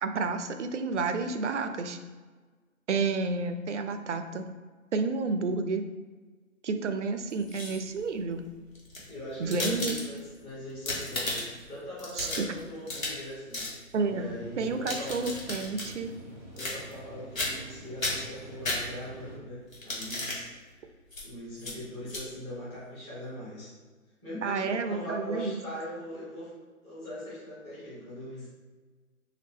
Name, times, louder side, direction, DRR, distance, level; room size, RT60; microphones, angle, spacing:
voice 1, 0.0-2.0 2.9-4.5 4.9-5.8 6.6-8.4 9.4-10.0 12.2-12.5 13.9-14.3 14.6-16.1 24.4-25.6, right 4 dB, 60° right, 7 dB, 0.5 m, -30 dB
sound 1, 7.3-8.0 8.7-10.4 10.7-11.6 12.0-13.3 13.5-13.8 14.6-15.9 16.6-17.1 17.4-17.7 18.0-19.2 19.7-20.4 21.1-21.2 21.6-21.7 22.1-22.2, left 2 dB, 70° left, 1.5 m, -34 dB
voice 2, 9.1-13.6 14.1-15.2 16.4-20.5 21.2-23.7 24.2-26.5 26.8-28.5, left 1 dB, 10° left, -12 dB, 1.0 m, -40 dB
sound 2, 14.0-19.4, right 1 dB, 15° right, 0.8 m, -47 dB
4.1 x 2.6 x 3.4 m, 1.4 s
figure-of-eight pair, 150°, 42 cm